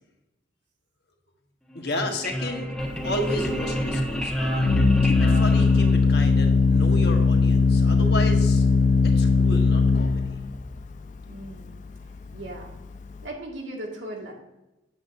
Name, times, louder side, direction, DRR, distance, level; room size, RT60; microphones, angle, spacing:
voice 1, 1.7-2.8 3.0-4.6 5.0-8.6 9.0-10.4, left 1 dB, 60° left, 2 dB, 1.3 m, -32 dB
sound 1, 1.7-6.4, equal, 5° left, 1.1 m, -29 dB
Organ, 2.8-13.3, left 4 dB, 40° left, 0.4 m, -21 dB
voice 2, 11.3-11.8 12.3-12.7 13.2-14.3, right 1 dB, 80° right, -1 dB, 1.9 m, -37 dB
8.4 x 7.8 x 2.6 m, 0.97 s
head